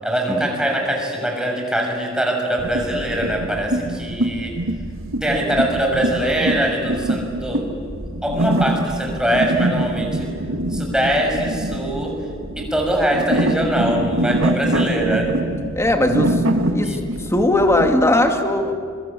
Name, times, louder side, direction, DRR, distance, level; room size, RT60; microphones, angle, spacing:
voice 1, 0.0-4.6 5.2-7.7 8.2-10.3 10.7-12.2 12.6-15.3 16.8-17.0, right 1 dB, 5° right, 1 dB, 6.2 m, -22 dB
sound 1, 2.6-18.1, right 1 dB, 70° right, 2.1 m, -24 dB
voice 2, 15.8-16.4 16.7-17.0 17.3-18.7, left 1 dB, 15° left, 4 dB, 2.5 m, -18 dB
26.0 x 24.5 x 8.6 m, 2.3 s
head